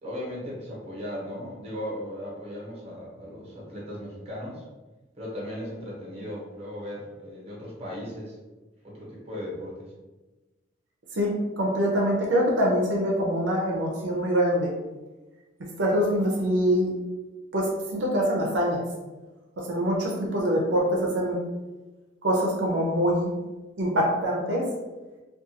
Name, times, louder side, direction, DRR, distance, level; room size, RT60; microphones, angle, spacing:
voice 1, 0.0-4.6 5.2-8.4 8.8-9.9, left 1 dB, 35° right, -5 dB, 0.9 m, -37 dB
voice 2, 11.1-14.7 15.8-16.9 17.5-18.8 19.6-21.4 22.2-23.3 23.8-24.7, equal, 90° right, -2 dB, 0.6 m, -24 dB
2.4 x 2.3 x 2.7 m, 1.2 s
head